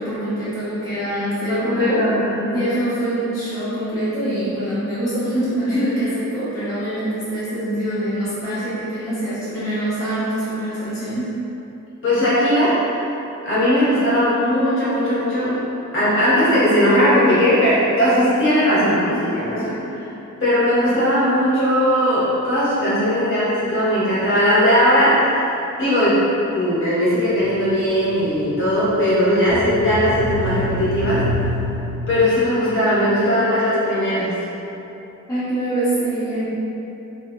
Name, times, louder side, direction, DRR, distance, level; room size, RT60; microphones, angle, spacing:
voice 1, 0.0-2.1 2.5-11.3 35.3-36.5, right 1 dB, 10° left, -14 dB, 0.7 m, -24 dB
voice 2, 1.5-2.6 12.0-13.1 13.4-15.6 15.9-20.1 20.4-31.5 32.1-34.4, equal, 40° left, -11 dB, 1.1 m, -18 dB
sound 1, 27.3-32.5, equal, 85° right, 0.5 m, -28 dB
3.1 x 2.5 x 2.6 m, 3.0 s
wide cardioid pair, 165°, 31 cm